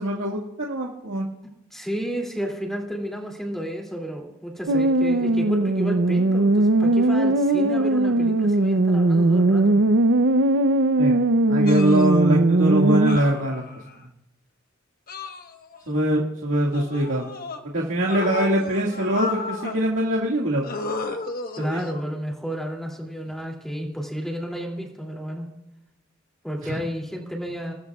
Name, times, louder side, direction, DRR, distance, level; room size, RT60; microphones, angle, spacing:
voice 1, 0.0-1.3 11.0-11.2 11.5-13.6 15.9-17.3 17.7-20.7 21.7-21.8 26.6-26.8, right 1 dB, 85° right, -3 dB, 2.0 m, -23 dB
voice 2, 1.4-9.8 21.6-25.5 26.4-27.7, equal, ahead, 1 dB, 2.6 m, -32 dB
sound 1, 4.7-13.2, right 2 dB, 60° right, 0.6 m, -19 dB
sound 2, 11.7-12.1 13.1-14.0 15.1-15.9 16.7-17.6 18.0-19.8 20.6-22.1 23.3-23.4, left 3 dB, 45° left, 1.2 m, -33 dB
28.0 x 19.5 x 2.4 m, 0.89 s
head